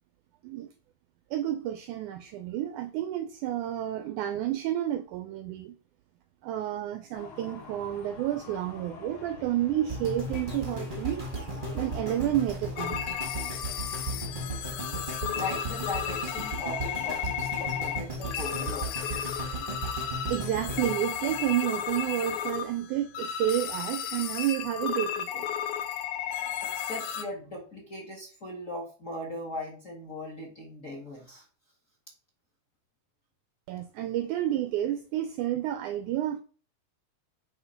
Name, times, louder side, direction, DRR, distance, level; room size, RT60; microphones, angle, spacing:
voice 1, 1.3-5.8 6.4-11.3 11.7-13.2 20.3-25.5 33.7-36.4, right 12 dB, 80° right, 1.8 m, -30 dB
sound 1, 7.1-12.4, left 4 dB, 55° left, 1.6 m, -46 dB
sound 2, 9.9-22.1 22.6-22.7, right 1 dB, 30° right, 0.9 m, -36 dB
sound 3, 12.8-27.2, left 9 dB, 80° left, 1.8 m, -34 dB
voice 2, 14.1-14.9 15.3-19.1 26.7-31.4, left 1 dB, 35° left, 1.4 m, -39 dB
7.9 x 3.6 x 5.7 m
omnidirectional pair, 4.0 m